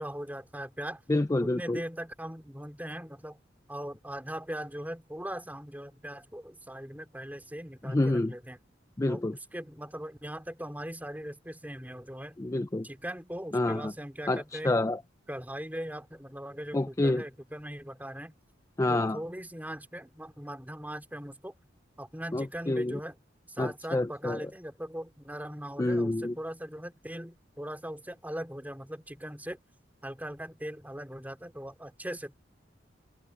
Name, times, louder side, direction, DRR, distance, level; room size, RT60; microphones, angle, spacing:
voice 1, 0.0-1.0 1.4-3.4 3.7-8.6 9.1-9.2 9.5-12.4 12.8-14.7 15.3-18.3 18.9-21.5 22.0-23.2 23.5-29.6 30.0-32.3, equal, 10° right, 3.2 m, -40 dB
voice 2, 1.1-1.8 7.8-8.3 9.0-9.3 12.4-12.9 13.5-13.9 14.3-15.0 16.7-17.2 18.8-19.2 22.3-23.0 23.6-24.4 25.8-26.4, left 2 dB, 15° left, 0.4 m, -28 dB
head